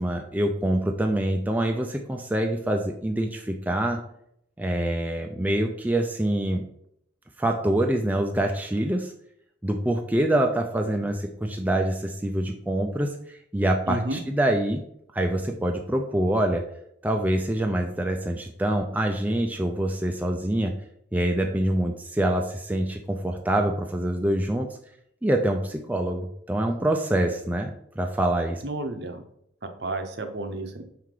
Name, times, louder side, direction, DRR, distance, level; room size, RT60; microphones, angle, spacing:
voice 1, 0.0-4.0 4.6-6.6 7.4-9.1 9.6-14.8 15.1-16.6 17.0-20.7 21.1-24.7 25.2-28.6, right 1 dB, 10° right, 3 dB, 0.4 m, -25 dB
voice 2, 13.9-14.2 28.6-29.2 29.8-30.8, right 2 dB, 55° right, 6 dB, 0.8 m, -31 dB
5.7 x 4.7 x 3.8 m, 0.72 s
head